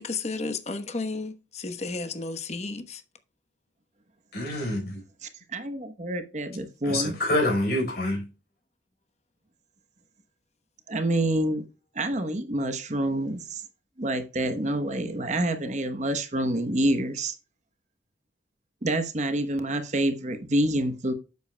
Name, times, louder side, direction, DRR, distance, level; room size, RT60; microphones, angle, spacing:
voice 1, 0.0-3.0, left 3 dB, 35° left, 1.0 m, -33 dB
voice 2, 4.3-5.0 6.8-8.2, left 1 dB, 55° left, 4.2 m, -26 dB
voice 3, 5.2-7.1 10.9-11.6 11.9-13.6 14.0-17.4 18.8-21.1, right 1 dB, 40° right, 1.0 m, -27 dB
9.9 x 8.1 x 2.2 m
head